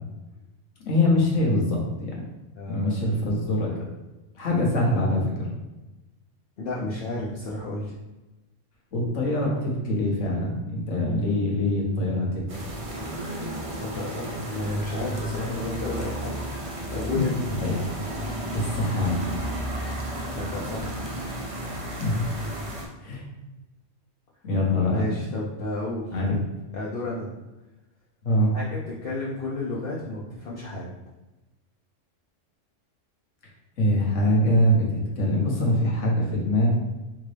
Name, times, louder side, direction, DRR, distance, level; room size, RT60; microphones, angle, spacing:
voice 1, 0.8-2.1 2.7-3.7 4.3-5.5 8.9-12.4 17.1-17.2 17.6-17.8 18.5-19.2 22.0-22.7 23.0-23.2 24.4-25.0 26.1-26.3 28.2-28.5 33.8-36.7, left 1 dB, 75° left, -2 dB, 1.4 m, -24 dB
voice 2, 2.6-3.0 6.6-7.9 13.7-16.6 16.9-17.7 20.3-21.0 24.9-26.2 26.7-27.3 28.5-30.9, left 2 dB, 55° left, -6 dB, 0.9 m, -32 dB
sound 1, 12.5-22.9, right 1 dB, 40° right, 0.5 m, -33 dB
3.9 x 3.6 x 3.3 m, 1.1 s
omnidirectional pair, 1.3 m